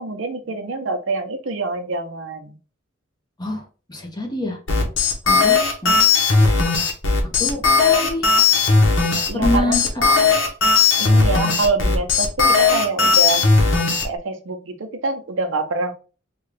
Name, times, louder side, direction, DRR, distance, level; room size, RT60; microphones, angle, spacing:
voice 1, 0.0-2.6 9.3-10.2 11.0-13.5 14.0-15.9, right 3 dB, 75° right, 6 dB, 0.6 m, -25 dB
voice 2, 3.4-4.6 5.3-6.0 6.4-6.5 7.4-8.3 9.3-9.9 10.2-10.3, left 1 dB, 20° left, 1 dB, 0.8 m, -26 dB
sound 1, 4.7-14.0, left 4 dB, 70° left, 1.0 m, -17 dB
3.6 x 2.3 x 3.3 m, 0.35 s
head